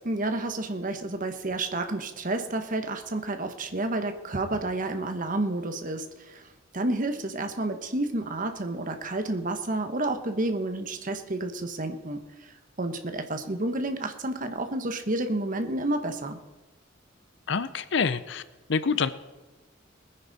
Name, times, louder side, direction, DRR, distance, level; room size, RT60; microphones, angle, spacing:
voice 1, 0.0-16.4, right 2 dB, 45° right, 7 dB, 1.2 m, -30 dB
voice 2, 17.5-18.4 18.7-19.1, left 5 dB, 65° left, 14 dB, 0.6 m, -26 dB
20.5 x 9.8 x 4.1 m, 1.1 s
head